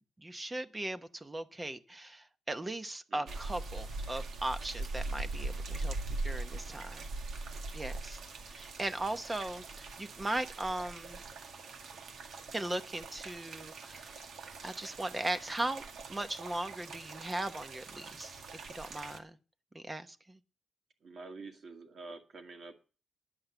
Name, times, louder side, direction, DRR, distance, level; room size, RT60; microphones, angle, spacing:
voice 1, 0.2-5.9 6.2-7.1 7.7-8.2 8.5-11.2 12.5-14.2 14.6-15.8 16.1-19.4 19.7-20.4, right 1 dB, 20° right, 10 dB, 0.9 m, -38 dB
voice 2, 3.1-3.4 21.0-22.7, right 3 dB, 50° right, 5 dB, 2.0 m, -48 dB
sound 1, 3.3-19.2, right 3 dB, 70° right, 1.8 m, -42 dB
10.5 x 7.9 x 7.8 m, 0.36 s
wide cardioid pair, 130°, 0 cm